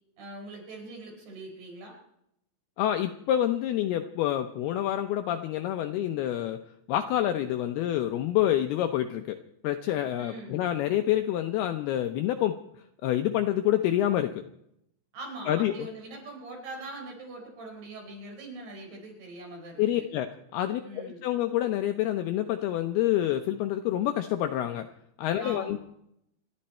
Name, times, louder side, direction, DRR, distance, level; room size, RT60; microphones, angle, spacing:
voice 1, 0.2-2.0 10.2-10.6 15.1-20.1 20.8-21.3 25.4-25.8, right 2 dB, 60° right, 0 dB, 6.8 m, -42 dB
voice 2, 2.8-6.6 6.9-9.4 9.6-12.6 13.0-14.4 15.5-15.7 19.8-24.9 25.2-25.8, left 12 dB, 80° left, 7 dB, 2.3 m, -27 dB
28.0 x 11.5 x 4.4 m, 0.77 s
omnidirectional pair, 5.3 m